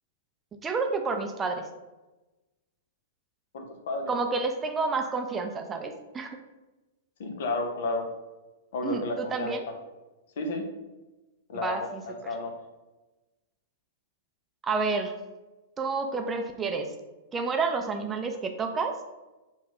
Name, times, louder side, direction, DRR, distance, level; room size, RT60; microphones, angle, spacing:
voice 1, 0.6-1.6 4.1-6.4 8.8-9.7 11.5-12.3 14.6-15.2 15.8-16.9 17.3-18.9, right 4 dB, 20° right, 5 dB, 0.4 m, -30 dB
voice 2, 3.5-4.1 7.2-8.1 8.7-9.7 10.4-10.6 11.5-11.8 12.1-12.5, left 2 dB, 65° left, 4 dB, 0.7 m, -32 dB
5.7 x 2.3 x 2.9 m, 1.1 s
hypercardioid pair, 115°, 0 cm